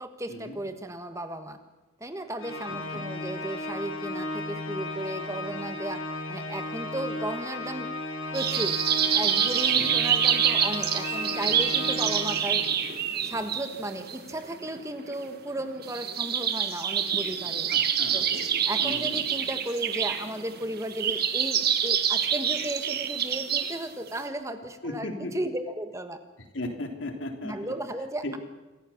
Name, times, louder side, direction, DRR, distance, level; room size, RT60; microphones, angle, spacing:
voice 1, 0.0-1.6 2.0-6.0 6.3-7.9 8.3-8.8 9.1-12.6 13.2-17.7 18.1-18.2 18.7-26.2 27.4-28.4, right 1 dB, 15° right, 7 dB, 1.5 m, -35 dB
Organ, 2.4-13.0, left 2 dB, 90° left, 2.6 m, -35 dB
voice 2, 2.7-3.0 9.7-10.0 17.7-18.2 18.8-19.2 24.8-25.3 26.5-27.7 28.2-28.4, left 1 dB, 65° left, 4 dB, 3.3 m, -36 dB
sound 1, 8.3-23.8 24.1-24.3, right 8 dB, 50° right, 1.7 m, -27 dB
26.5 x 15.0 x 7.3 m, 1.1 s
head